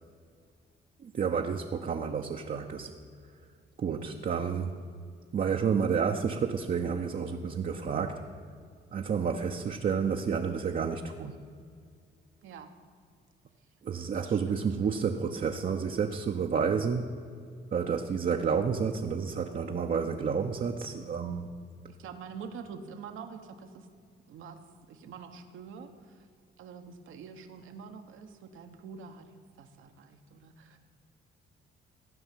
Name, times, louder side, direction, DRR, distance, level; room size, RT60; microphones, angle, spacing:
voice 1, 1.0-2.9 3.8-4.8 5.3-8.3 8.9-11.4 13.8-17.1 17.7-21.5, right 6 dB, 45° right, 2 dB, 0.8 m, -30 dB
voice 2, 12.4-12.7 14.1-14.7 21.9-23.9 24.3-24.6 24.9-26.3 26.6-29.3 29.6-30.8, right 6 dB, 80° right, 6 dB, 1.2 m, -46 dB
15.0 x 5.7 x 9.1 m, 2.2 s
cardioid pair, 90°, 20 cm